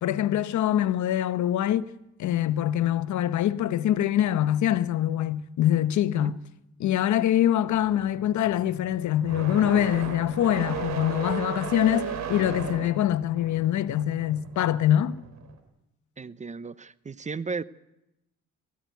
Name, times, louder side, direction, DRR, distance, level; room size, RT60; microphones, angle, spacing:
voice 1, 0.0-1.9 2.2-6.3 6.8-15.2, left 11 dB, 70° left, 0.9 m, -24 dB
sound 1, 7.7-15.6, right 6 dB, 60° right, 3.6 m, -36 dB
voice 2, 16.2-17.6, right 4 dB, 25° right, 0.7 m, -35 dB
19.5 x 14.5 x 9.3 m
cardioid pair, 90°, 30 cm